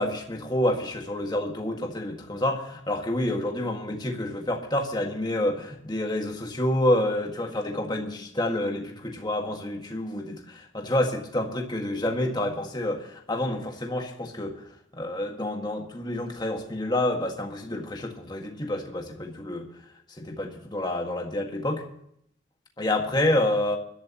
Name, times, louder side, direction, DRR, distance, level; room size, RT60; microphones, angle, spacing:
voice 1, 0.0-14.6 15.0-19.7 20.2-21.8 22.8-23.8, left 1 dB, 20° left, 2 dB, 1.8 m, -28 dB
21.5 x 12.0 x 3.0 m, 0.71 s
head